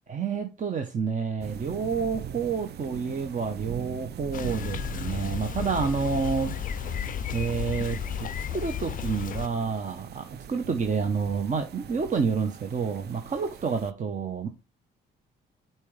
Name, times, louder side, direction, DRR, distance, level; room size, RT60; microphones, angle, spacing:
voice 1, 0.1-6.5 7.3-14.5, right 5 dB, 40° right, 0.9 m, -29 dB
sound 1, 1.4-13.9, right 9 dB, 55° right, 0.5 m, -42 dB
Bicycle, 4.3-9.5, left 9 dB, 45° left, 0.4 m, -33 dB
8.4 x 4.4 x 3.3 m
cardioid pair, 90°, 20 cm